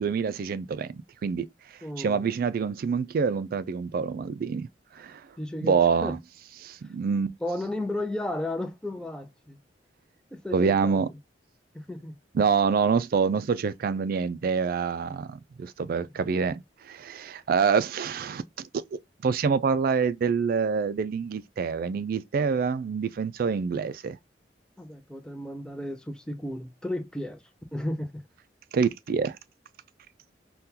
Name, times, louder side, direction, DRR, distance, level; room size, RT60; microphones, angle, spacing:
voice 1, 0.0-1.5 2.0-4.7 5.0-5.2 5.6-6.2 6.6-7.3 10.5-11.1 12.3-24.2 28.7-29.4, right 5 dB, 55° right, 0.3 m, -26 dB
voice 2, 1.8-2.3 5.4-6.1 7.4-9.6 10.3-11.1 11.7-12.2 24.8-27.4 27.7-28.2, left 1 dB, 5° left, 0.5 m, -34 dB
3.7 x 2.2 x 2.7 m
head